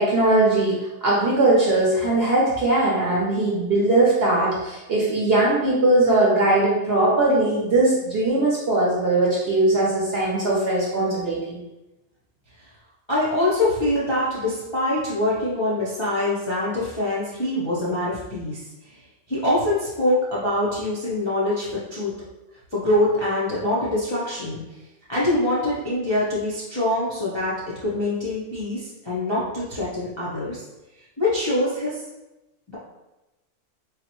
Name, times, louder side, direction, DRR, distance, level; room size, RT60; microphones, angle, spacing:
voice 1, 0.0-11.6, right 2 dB, 55° right, -5 dB, 0.7 m, -20 dB
voice 2, 13.1-19.0 19.3-22.2 22.7-24.6 25.1-27.6 27.8-30.6 31.2-32.0 32.7-32.8, left 1 dB, 35° left, -9 dB, 0.4 m, -24 dB
3.8 x 2.0 x 2.9 m, 1.0 s
omnidirectional pair, 1.6 m